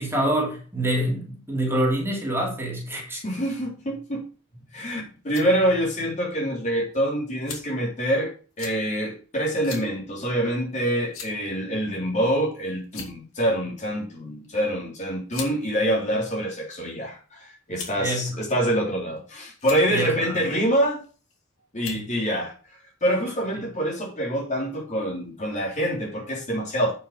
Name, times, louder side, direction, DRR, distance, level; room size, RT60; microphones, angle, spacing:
voice 1, 0.0-3.2 18.0-18.3 19.9-20.1 21.9-22.0, right 1 dB, 10° right, -2 dB, 3.1 m, -26 dB
voice 2, 3.2-4.2 4.7-21.0 21.7-26.9, equal, 35° left, -2 dB, 3.5 m, -26 dB
sound 1, 5.2-5.5 6.3-6.4 7.5-7.8 8.6-8.8 9.6-9.9 10.2-10.4 11.1-11.5 12.4-12.5 12.8-13.3 14.4-14.6 15.3-15.5 16.4-16.9 17.7-18.1 18.9-19.2 19.5-19.8 21.0-21.3 21.8-22.1, left 6 dB, 70° left, 2.8 m, -39 dB
9.0 x 6.1 x 5.0 m, 0.37 s
head